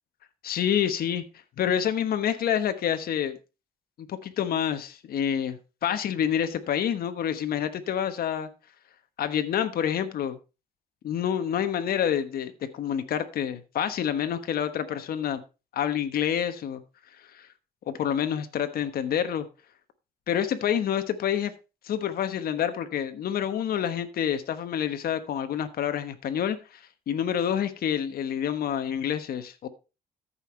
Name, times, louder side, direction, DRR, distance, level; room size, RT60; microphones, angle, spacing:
voice 1, 0.4-1.2 1.6-3.4 4.0-8.5 9.2-10.4 11.0-15.4 15.7-16.8 17.3-17.5 17.9-19.5 20.3-21.5 21.8-29.7, left 9 dB, 80° left, 1.2 m, -28 dB
13.5 x 5.7 x 4.4 m
cardioid pair, 85°, 15 cm